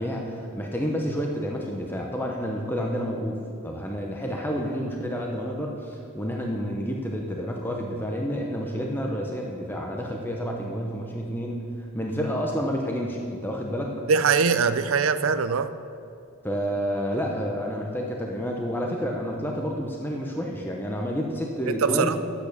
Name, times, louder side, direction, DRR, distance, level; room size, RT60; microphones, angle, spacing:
voice 1, 0.0-13.9 16.4-22.2, equal, 10° left, 0 dB, 0.8 m, -29 dB
voice 2, 14.1-15.7 21.7-22.2, right 5 dB, 65° right, 12 dB, 0.5 m, -22 dB
11.0 x 8.4 x 6.6 m, 2.5 s
head